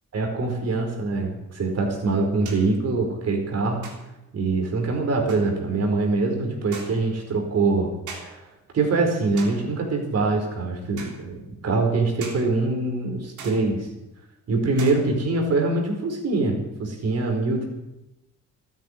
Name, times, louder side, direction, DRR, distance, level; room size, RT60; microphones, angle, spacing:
voice 1, 0.1-3.9 4.3-7.9 8.2-8.4 8.7-13.9 14.5-17.7, right 3 dB, 55° right, 2 dB, 4.7 m, -24 dB
sound 1, 1.2-1.3 2.5-2.8 3.8-4.3 5.3-5.6 6.7-7.2 8.1-8.5 9.4-9.8 11.0-11.3 12.2-12.5 13.4-13.9 14.8-15.4, right 4 dB, 75° right, 3.6 m, -41 dB
13.0 x 9.7 x 9.9 m, 0.92 s
cardioid pair, 90°, 30 cm